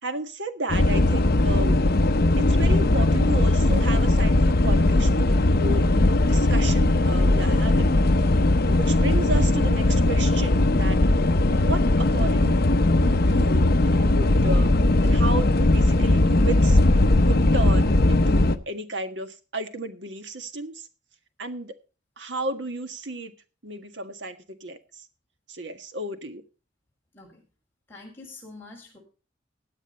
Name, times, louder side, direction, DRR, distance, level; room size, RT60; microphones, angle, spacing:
voice 1, 0.0-1.8 2.4-5.9 6.2-8.0 8.7-11.0 11.5-12.6 13.0-14.7 15.0-16.8 17.2-20.9 21.4-21.7 22.2-23.3 23.6-25.0 25.5-26.4, right 2 dB, 70° right, 8 dB, 1.6 m, -33 dB
sound 1, 0.7-18.6, left 2 dB, 55° left, 0.8 m, -19 dB
voice 2, 27.9-29.0, left 3 dB, 10° left, -3 dB, 6.1 m, -45 dB
16.5 x 8.9 x 4.3 m, 0.34 s
head